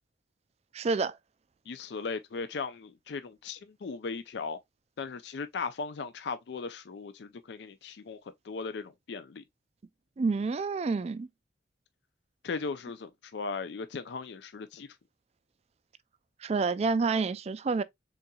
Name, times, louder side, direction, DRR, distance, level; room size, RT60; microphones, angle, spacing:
voice 1, 0.7-1.2 10.2-11.3 16.4-17.8, right 4 dB, 35° right, 0.3 m, -28 dB
voice 2, 1.7-4.6 5.0-8.2 8.4-9.4 12.4-14.9, left 4 dB, 60° left, 0.4 m, -37 dB
4.1 x 3.8 x 2.3 m
head